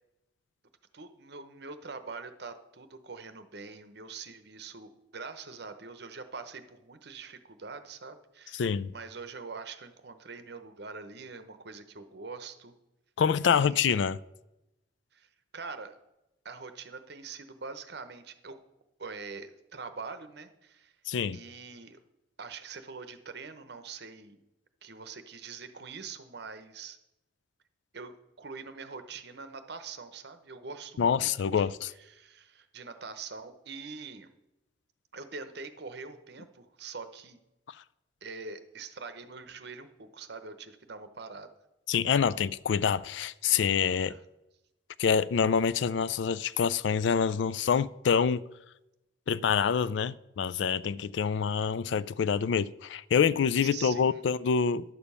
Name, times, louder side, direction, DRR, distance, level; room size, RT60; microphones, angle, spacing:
voice 1, 0.9-12.7 13.5-14.0 15.1-16.0 16.4-18.6 19.0-20.9 21.3-22.0 22.4-24.4 24.8-27.0 27.9-34.3 35.1-37.4 38.2-41.5 44.1-44.2 53.6-54.2, right 4 dB, 60° right, 0.9 m, -44 dB
voice 2, 8.5-8.9 13.2-14.2 21.1-21.4 31.0-31.9 41.9-44.2 45.0-48.4 49.3-54.8, left 7 dB, 70° left, 0.3 m, -26 dB
11.0 x 6.9 x 5.5 m
head